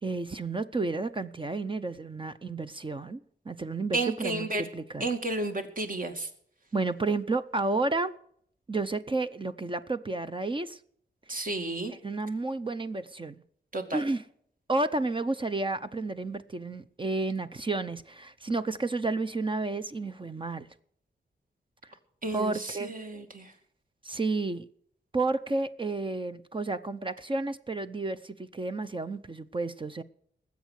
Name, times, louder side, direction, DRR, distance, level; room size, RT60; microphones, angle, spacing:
voice 1, 0.0-5.1 6.7-8.1 8.7-10.8 11.3-11.4 11.9-13.4 13.9-14.2 14.7-20.7 21.8-21.9 22.3-22.9 24.0-24.7 25.1-30.0, right 3 dB, 25° right, 0.7 m, -31 dB
voice 2, 3.9-4.7 5.0-6.3 11.3-11.9 13.7-14.0 22.2-23.5, right 2 dB, 50° right, 2.4 m, -32 dB
20.0 x 8.3 x 6.4 m
wide cardioid pair, 130°, 19 cm